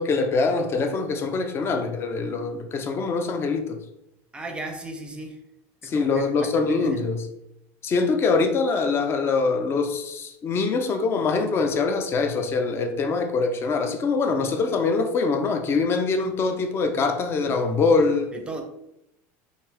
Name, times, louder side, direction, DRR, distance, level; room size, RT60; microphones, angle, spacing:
voice 1, 0.0-3.8 5.8-7.3 7.8-18.3, left 4 dB, 35° left, 0.5 m, -24 dB
voice 2, 4.3-5.4 5.8-7.0 18.3-18.6, right 2 dB, 15° right, 0.6 m, -36 dB
3.4 x 2.7 x 3.3 m
supercardioid pair, 120°, 7 cm